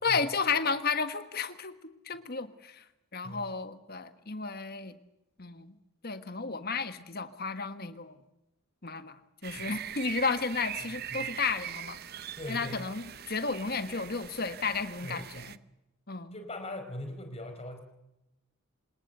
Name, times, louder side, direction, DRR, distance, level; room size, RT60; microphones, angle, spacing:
voice 1, 0.0-1.7 2.0-2.8 3.1-5.0 5.4-5.7 6.0-8.2 8.8-12.0 12.5-15.6 16.1-16.4, left 4 dB, 45° left, 11 dB, 1.4 m, -33 dB
sound 1, 9.4-15.6, right 10 dB, 45° right, 0.7 m, -41 dB
voice 2, 12.4-12.8 15.0-15.5 16.3-17.8, left 1 dB, 30° left, 5 dB, 4.6 m, -41 dB
28.5 x 19.0 x 6.7 m, 0.90 s
head